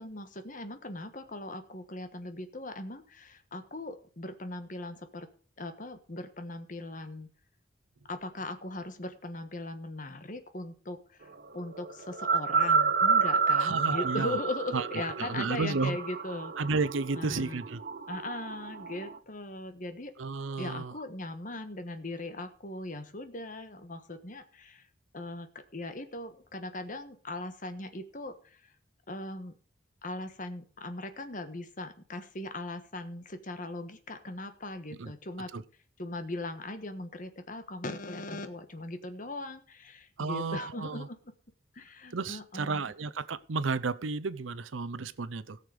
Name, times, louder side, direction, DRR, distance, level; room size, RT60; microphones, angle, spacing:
voice 1, 0.0-5.3 5.6-7.3 8.1-16.5 17.2-17.6 18.1-20.1 20.6-24.9 25.1-28.7 29.1-29.5 30.0-35.5 36.0-41.2 41.7-42.8, left 2 dB, 45° left, 1.3 m, -39 dB
sound 1, 11.6-19.2, right 5 dB, 50° right, 0.6 m, -30 dB
voice 2, 13.6-14.4 14.7-16.0 16.6-17.8 20.2-20.9 35.0-35.1 35.5-35.6 40.2-41.1 42.1-45.6, right 4 dB, 85° right, 0.7 m, -32 dB
17.5 x 6.7 x 5.0 m
head